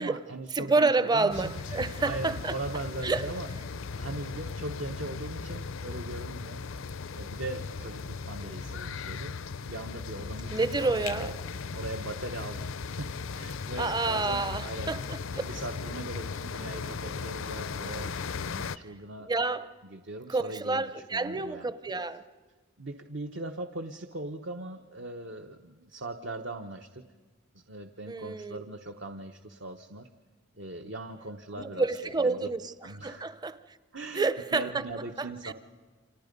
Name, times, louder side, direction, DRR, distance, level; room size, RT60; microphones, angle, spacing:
voice 1, 0.0-3.5 4.0-6.6 7.1-9.3 9.7-11.3 11.7-15.0 15.4-18.1 18.4-19.3 19.8-21.7 22.8-27.0 27.5-30.1 30.6-32.4 32.8-33.3 33.9-35.5, right 2 dB, 60° right, 1.0 m, -40 dB
voice 2, 0.5-2.6 3.0-3.3 8.4-8.5 10.5-11.3 13.8-15.2 17.0-17.1 19.2-19.7 20.3-22.2 28.1-28.6 31.6-32.7 33.0-33.8 34.1-34.8 35.2-35.5, right 3 dB, 20° right, 0.7 m, -29 dB
sound 1, 1.3-18.8, left 5 dB, 75° left, 0.6 m, -37 dB
29.5 x 26.5 x 5.3 m
head